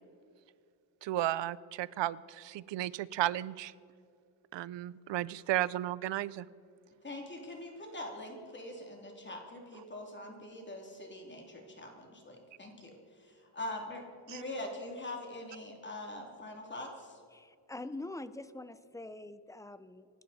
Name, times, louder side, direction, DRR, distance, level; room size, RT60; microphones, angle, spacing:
voice 1, 1.0-3.7 4.5-6.5 14.3-14.4, right 14 dB, 85° right, 20 dB, 0.6 m, -34 dB
voice 2, 7.0-17.2, left 1 dB, 25° left, 1 dB, 2.7 m, -43 dB
voice 3, 17.3-20.1, left 2 dB, 10° left, 14 dB, 0.5 m, -44 dB
27.0 x 11.5 x 4.2 m, 2.3 s
wide cardioid pair, 125°, 42 cm